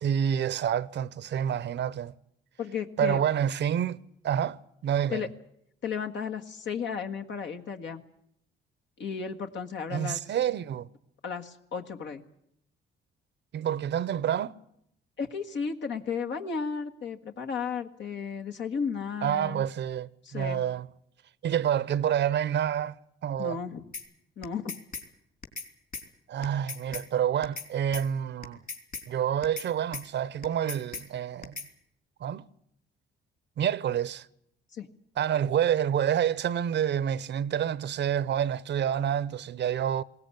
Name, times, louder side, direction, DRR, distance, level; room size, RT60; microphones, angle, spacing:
voice 1, 0.0-2.1 3.0-4.0 4.2-5.3 9.9-10.9 13.5-14.5 19.2-20.9 21.4-23.0 23.2-23.6 26.3-28.6 29.1-31.5 32.2-32.4 33.6-34.3 35.2-40.0, right 9 dB, 65° right, 0.8 m, -28 dB
voice 2, 2.6-3.2 5.1-5.3 5.8-8.0 9.0-10.2 11.2-12.2 15.2-19.6 20.2-20.6 23.4-23.8 24.4-24.7 34.7-34.9, left 6 dB, 65° left, 1.7 m, -34 dB
sound 1, 23.9-24.1 24.4-25.1 25.4-25.7 25.9-26.1 26.4-27.1 27.4-27.7 27.9-28.1 28.4-29.1 29.4-29.7 29.9-30.1 30.4-31.1 31.4-31.7, left 4 dB, 45° left, 3.7 m, -38 dB
20.5 x 18.0 x 9.8 m
cardioid pair, 90°, 20 cm